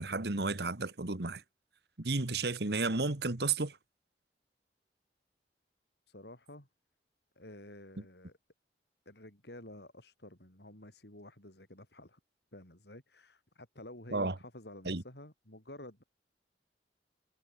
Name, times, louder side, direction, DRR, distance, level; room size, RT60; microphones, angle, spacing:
voice 1, 0.0-1.4 2.0-3.8 14.1-14.3 14.8-15.0, right 3 dB, 65° right, 1.6 m, -32 dB
voice 2, 6.1-6.7 7.4-8.4 9.1-12.2 12.5-16.0, left 1 dB, 65° left, 5.6 m, -51 dB
head